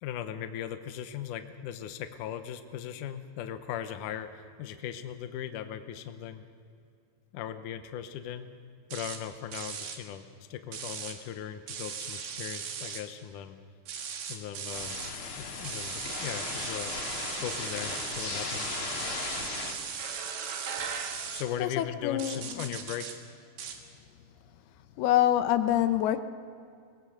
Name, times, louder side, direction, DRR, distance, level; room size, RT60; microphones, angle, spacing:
voice 1, 0.0-6.4 7.3-8.5 8.9-10.2 10.5-13.6 14.3-15.0 15.4-16.9 17.4-18.7 21.3-23.2, left 9 dB, 70° left, 8 dB, 2.2 m, -38 dB
sound 1, 8.9-9.2 9.5-10.0 10.7-11.2 11.7-13.0 13.9-15.1 15.6-21.5 22.2-23.2 23.6-23.8, right 7 dB, 75° right, 3.5 m, -38 dB
sound 2, 14.7-19.7, left 4 dB, 40° left, 2.4 m, -37 dB
sound 3, 19.9-22.5, right 6 dB, 50° right, 2.0 m, -40 dB
voice 2, 21.6-22.8 25.0-26.2, left 12 dB, 85° left, 10 dB, 2.8 m, -26 dB
23.0 x 20.0 x 6.6 m, 2.4 s
omnidirectional pair, 4.4 m